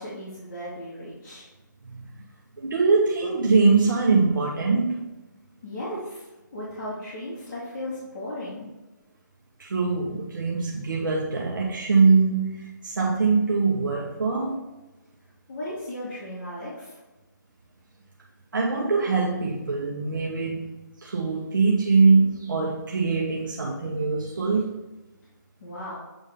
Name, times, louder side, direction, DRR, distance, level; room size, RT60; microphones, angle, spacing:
voice 1, 0.0-1.5 5.6-8.7 15.5-17.0 25.6-26.0, left 1 dB, 35° left, 1.9 m, -36 dB
voice 2, 2.6-5.1 9.6-14.6 18.5-20.7 21.0-24.7, right 4 dB, 85° right, 1.0 m, -22 dB
8.0 x 3.6 x 3.6 m
hypercardioid pair, 165°, 10 cm